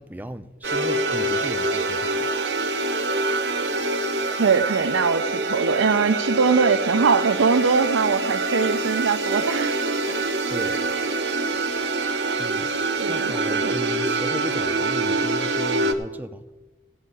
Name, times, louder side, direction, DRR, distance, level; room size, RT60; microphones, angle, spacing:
voice 1, 0.0-2.3 10.5-10.8 12.4-12.7 13.1-16.4, right 1 dB, 10° right, 0.5 m, -36 dB
sound 1, 0.6-15.9, right 2 dB, 60° right, 0.9 m, -25 dB
voice 2, 4.4-9.8 10.1-10.2 13.0-13.3 13.6-13.8, right 5 dB, 90° right, 0.5 m, -22 dB
14.5 x 5.5 x 8.3 m
head